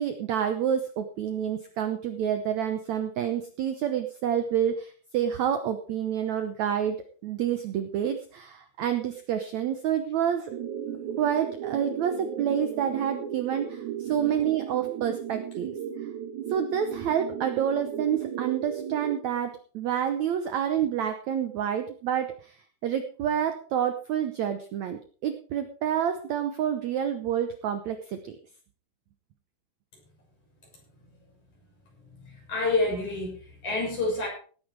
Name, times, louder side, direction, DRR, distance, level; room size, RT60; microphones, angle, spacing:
voice 1, 0.0-7.0 7.2-10.5 11.2-15.7 16.5-28.4, right 9 dB, 85° right, 8 dB, 1.6 m, -28 dB
sound 1, 10.5-19.2, right 8 dB, 60° right, 2.2 m, -36 dB
voice 2, 32.0-34.3, left 2 dB, 45° left, -1 dB, 7.8 m, -28 dB
18.0 x 9.1 x 4.8 m, 0.42 s
omnidirectional pair, 4.6 m